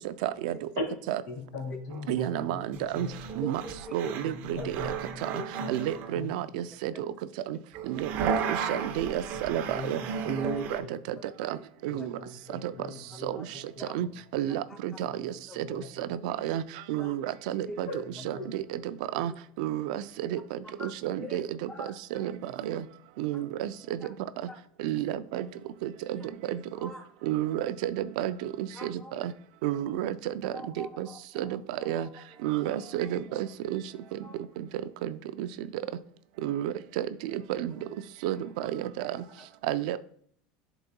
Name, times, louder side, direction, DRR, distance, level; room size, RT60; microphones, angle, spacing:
voice 1, 0.0-0.6 1.1-1.2 2.1-3.1 3.4-3.6 3.9-4.8 5.2-5.4 5.7-7.1 7.5-7.6 7.8-10.0 10.3-10.8 11.1-11.6 11.8-12.1 12.6-12.7 13.2-13.5 13.9-14.1 14.3-16.6 16.9-17.9 18.5-19.3 19.6-22.8 23.2-24.0 24.8-25.5 25.8-26.2 26.5-26.9 27.2-29.3 29.6-31.1 31.4-32.1 32.4-33.8 34.6-34.7 35.0-35.5 36.4-37.7 38.2-39.2 39.6-40.0, right 12 dB, 75° right, 13 dB, 0.4 m, -31 dB
voice 2, 1.3-3.2 4.0-6.6 9.3-10.4 10.8-11.3 11.9-13.6 14.0-14.1 15.1-16.2 17.9-18.6 20.6-20.7, left 3 dB, 65° left, 3 dB, 2.0 m, -41 dB
sound 1, 1.9-2.0 2.7-6.1 7.7-10.8, right 6 dB, 50° right, 0.8 m, -34 dB
voice 3, 3.4-4.1 4.6-4.7 5.3-5.4 5.8-5.9 6.9-7.0 10.4-11.3 11.9-12.1 13.1-13.5 13.8-14.0 14.7-14.8 15.5-15.8 17.0-17.1 17.7-17.8 20.8-21.4 21.7-22.3 23.3-23.4 24.0-24.1 24.5-24.6 26.2-26.3 26.8-27.1 27.4-27.5 28.7-29.3 30.5-33.2 33.9-34.4 38.2-38.3 39.4-39.5, left 1 dB, 10° left, 5 dB, 0.6 m, -44 dB
10.5 x 4.0 x 2.2 m, 0.63 s
supercardioid pair, 140°, 4 cm